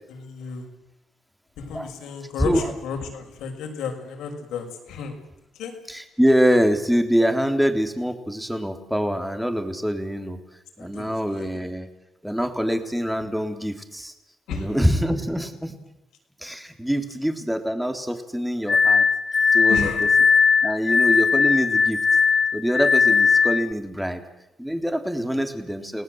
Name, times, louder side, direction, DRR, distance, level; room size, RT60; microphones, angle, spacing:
voice 1, 0.1-0.7 1.6-5.1 5.6-5.7 10.8-11.5 14.5-14.7 19.7-20.1, left 5 dB, 85° left, 4 dB, 6.2 m, -32 dB
voice 2, 2.4-2.7 5.9-10.4 10.8-11.9 12.2-14.1 14.5-15.8 16.4-19.1 19.5-19.8 20.6-22.0 22.5-24.2 24.6-26.0, equal, 5° right, 6 dB, 3.6 m, -24 dB
Glass, 18.7-23.7, left 5 dB, 35° left, 1.2 m, -19 dB
30.0 x 19.0 x 8.0 m, 0.87 s
cardioid pair, 90°, 0 cm